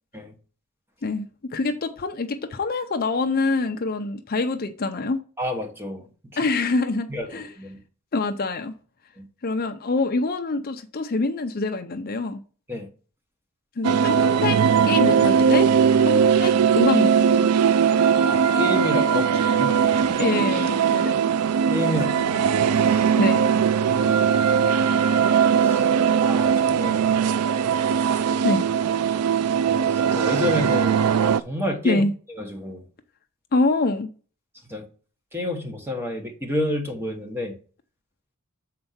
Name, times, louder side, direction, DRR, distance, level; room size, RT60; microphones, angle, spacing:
voice 1, 1.0-5.2 6.4-7.5 8.1-8.8 9.4-12.4 13.8-15.7 16.0-17.1 17.4-17.5 20.2-21.1 22.1-22.2 23.2-23.4 28.4-28.6 31.8-32.1 33.5-34.1, left 3 dB, 40° left, 0.6 m, -25 dB
voice 2, 5.4-6.0 7.1-7.3 7.6-7.8 9.2-9.3 12.7-12.9 18.3-20.3 21.7-23.2 23.8-24.5 25.6-25.8 26.2-27.0 29.7-31.0 31.4-32.0 32.3-32.8 34.7-34.8 35.3-37.6, left 1 dB, 10° right, 1.3 m, -30 dB
sound 1, 13.8-31.4, right 7 dB, 85° right, 0.4 m, -20 dB
6.7 x 4.4 x 5.7 m
head